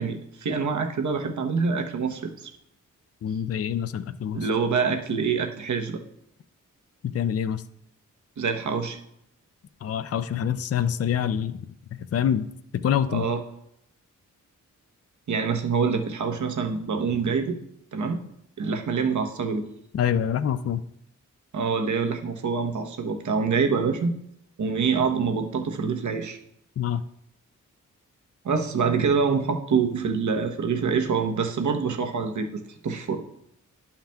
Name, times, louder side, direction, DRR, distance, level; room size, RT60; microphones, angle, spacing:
voice 1, 0.0-2.5 4.3-6.0 8.4-9.0 13.1-13.4 15.3-17.6 17.9-18.2 18.6-19.6 21.5-24.1 24.6-26.4 28.4-33.2, right 5 dB, 65° right, 4 dB, 1.0 m, -25 dB
voice 2, 3.2-4.5 7.0-7.6 9.8-11.6 11.9-12.5 12.8-13.3 19.9-20.8 26.8-27.0, left 9 dB, 50° left, 13 dB, 0.4 m, -26 dB
11.5 x 5.7 x 2.3 m, 0.76 s
cardioid pair, 80°, 32 cm